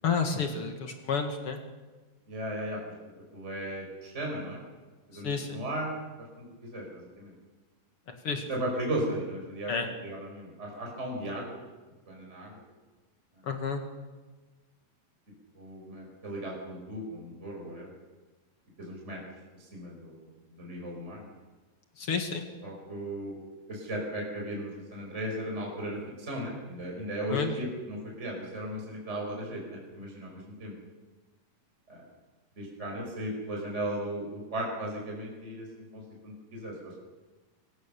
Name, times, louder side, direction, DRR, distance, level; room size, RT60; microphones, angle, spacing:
voice 1, 0.0-1.6 5.2-5.6 8.2-8.5 9.7-9.9 13.4-13.8 22.0-22.4 27.3-27.5, left 5 dB, 45° left, 5 dB, 2.3 m, -30 dB
voice 2, 2.3-2.8 3.3-4.6 5.1-7.3 8.5-9.7 10.0-11.6 12.1-12.6 15.5-17.9 18.8-19.2 19.7-21.3 22.6-23.3 23.7-30.7 31.9-32.0 32.6-35.7 35.9-36.7, right 1 dB, 15° right, -1 dB, 5.3 m, -36 dB
24.5 x 16.5 x 6.9 m, 1.3 s
omnidirectional pair, 4.3 m